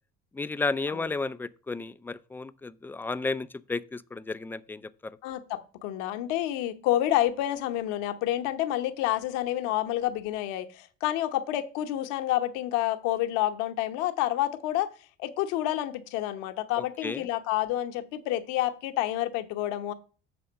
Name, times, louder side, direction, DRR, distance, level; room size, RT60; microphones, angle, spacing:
voice 1, 0.3-5.1 16.8-17.2, left 3 dB, 5° left, 0.4 m, -33 dB
voice 2, 5.2-14.9 15.2-19.9, left 13 dB, 60° left, 1.0 m, -29 dB
6.9 x 4.2 x 6.5 m
figure-of-eight pair, 60°, 34 cm